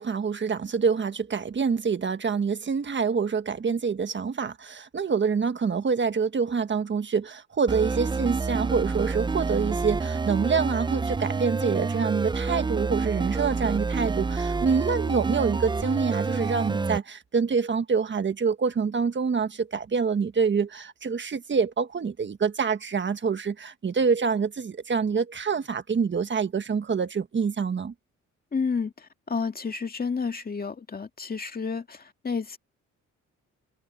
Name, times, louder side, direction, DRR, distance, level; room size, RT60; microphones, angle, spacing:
voice 1, 0.0-27.9, right 5 dB, 40° right, 1.6 m, -26 dB
sound 1, 7.7-17.0, right 4 dB, 15° right, 0.5 m, -28 dB
voice 2, 28.5-32.6, left 5 dB, 30° left, 2.0 m, -30 dB
cardioid pair, 90°, 30 cm